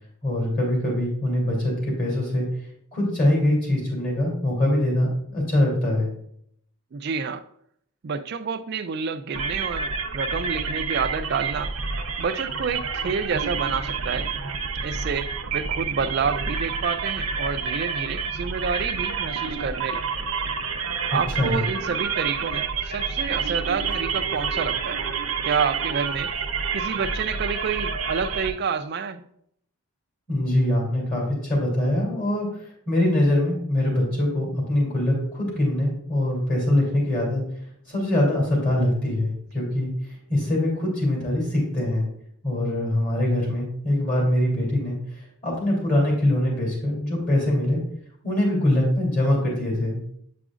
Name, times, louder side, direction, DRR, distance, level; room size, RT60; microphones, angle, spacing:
voice 1, 0.2-2.5 2.9-6.1 21.4-21.6 30.3-32.5 32.9-37.4 37.9-42.1 42.4-45.0 45.4-47.8 48.2-50.0, left 1 dB, 40° left, -3 dB, 2.6 m, -23 dB
voice 2, 6.9-7.4 8.0-11.7 12.2-14.3 14.8-20.3 21.1-25.0 25.4-26.4 26.7-29.3, right 5 dB, 45° right, 10 dB, 0.3 m, -28 dB
sound 1, 9.3-28.5, right 5 dB, 70° right, 0.7 m, -29 dB
8.3 x 5.0 x 2.4 m, 0.69 s
head